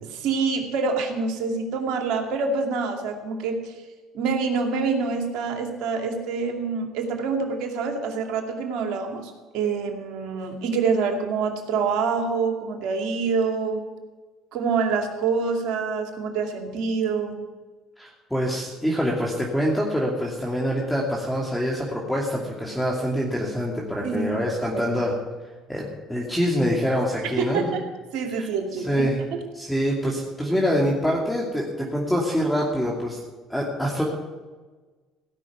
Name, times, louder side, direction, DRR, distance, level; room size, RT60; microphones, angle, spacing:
voice 1, 0.0-3.7 4.1-13.8 14.5-17.4 24.0-24.4 24.7-24.8 27.2-27.8 28.1-29.1, right 5 dB, 70° right, 3 dB, 2.5 m, -26 dB
voice 2, 18.0-25.2 25.7-27.7 28.3-28.5 28.8-29.2 29.5-33.2 33.5-34.0, equal, 5° left, -2 dB, 2.7 m, -25 dB
17.0 x 6.1 x 9.4 m, 1.3 s
supercardioid pair, 80°, 0 cm